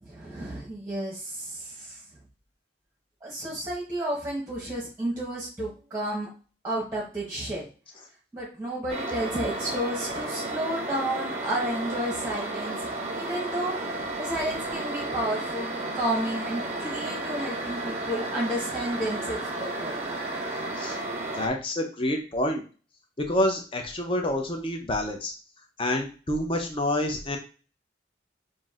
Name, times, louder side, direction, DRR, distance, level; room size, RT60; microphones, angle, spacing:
voice 1, 0.0-2.0 3.2-6.3 6.6-7.7 8.3-12.9 13.1-19.9, right 1 dB, 10° right, -4 dB, 1.0 m, -31 dB
sound 1, 8.9-21.5, right 2 dB, 35° right, 0.6 m, -33 dB
voice 2, 21.3-22.6 23.2-25.3 25.8-27.4, left 1 dB, 30° left, 3 dB, 0.6 m, -27 dB
5.9 x 2.6 x 2.4 m, 0.37 s
head